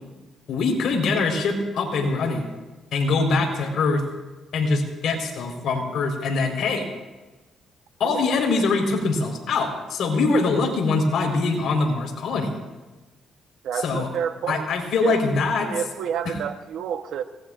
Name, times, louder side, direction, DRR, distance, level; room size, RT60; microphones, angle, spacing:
voice 1, 0.5-2.5 2.9-4.0 4.5-6.9 8.0-12.5 13.7-14.1 14.5-15.7, left 3 dB, 70° left, 2 dB, 4.3 m, -23 dB
voice 2, 13.6-14.7 15.0-15.2 15.6-17.2, right 8 dB, 75° right, 8 dB, 1.0 m, -29 dB
26.0 x 20.0 x 2.6 m, 1.2 s
cardioid pair, 90°, 0 cm